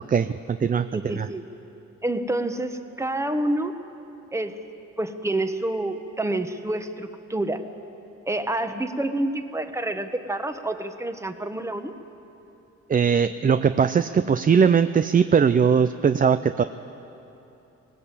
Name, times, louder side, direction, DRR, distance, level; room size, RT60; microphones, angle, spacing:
voice 1, 0.1-1.3 12.9-16.6, right 6 dB, 30° right, 11 dB, 0.5 m, -20 dB
voice 2, 0.9-1.5 2.0-3.7 4.3-4.6 5.0-7.6 8.3-11.9, right 1 dB, 10° right, 8 dB, 1.3 m, -28 dB
19.5 x 18.0 x 8.4 m, 2.9 s
cardioid pair, 90°, 30 cm